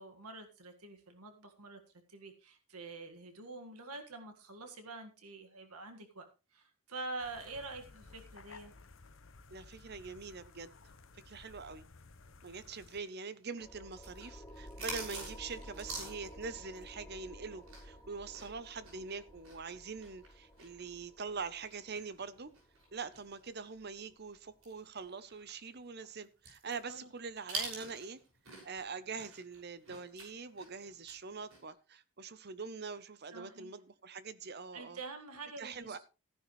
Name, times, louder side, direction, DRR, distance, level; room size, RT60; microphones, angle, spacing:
voice 1, 0.0-1.8 2.1-6.2 6.5-8.7 26.9-27.1 33.3-33.7 34.7-36.0, right 3 dB, 85° right, 5 dB, 1.9 m, -46 dB
sound 1, 7.2-13.0, left 3 dB, 60° left, 1.0 m, -56 dB
voice 2, 9.5-10.7 11.3-11.9 12.4-22.5 22.9-28.2 28.6-35.0 35.6-36.0, right 4 dB, 45° right, 14 dB, 0.8 m, -44 dB
sound 2, 13.0-18.0 18.3-23.8 24.2-24.3 24.6-28.8 29.1-31.2 31.5-31.7, right 3 dB, 70° right, 6.1 m, -46 dB
sound 3, 13.6-24.7, equal, 15° left, 1.1 m, -53 dB
15.0 x 10.5 x 3.2 m, 0.30 s
head